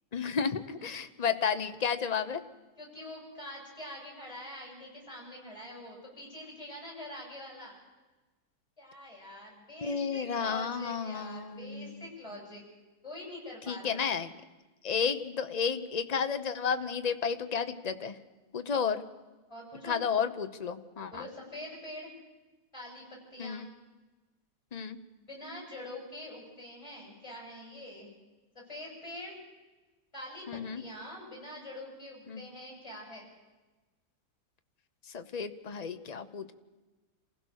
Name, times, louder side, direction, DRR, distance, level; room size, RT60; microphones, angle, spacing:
voice 1, 0.1-2.4 9.8-12.1 13.7-14.3 14.8-18.2 18.5-19.0 19.8-21.2 23.4-23.7 24.7-25.0 30.5-30.8 32.3-32.4 35.1-36.5, left 6 dB, 50° left, 9 dB, 0.4 m, -32 dB
voice 2, 2.8-7.8 8.8-12.6 13.0-14.0 19.5-20.0 21.1-22.1 22.7-23.6 25.2-28.1 28.7-29.3 30.1-33.3, left 1 dB, 15° left, -1 dB, 7.6 m, -45 dB
28.0 x 16.0 x 6.5 m, 1.2 s
omnidirectional pair, 2.1 m